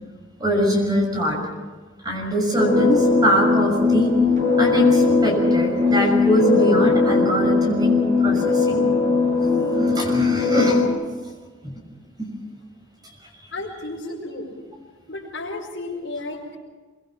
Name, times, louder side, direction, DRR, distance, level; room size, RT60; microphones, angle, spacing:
voice 1, 0.4-1.4 2.0-4.1 4.6-7.9 8.2-8.9 9.7-10.8 11.6-11.8 12.2-12.3, equal, 20° right, 1 dB, 6.2 m, -22 dB
sound 1, 2.6-10.9, left 4 dB, 40° right, 7.1 m, -19 dB
voice 2, 13.5-14.5 15.1-16.6, left 2 dB, 70° left, -8 dB, 5.0 m, -33 dB
24.5 x 24.0 x 5.9 m, 1.4 s
head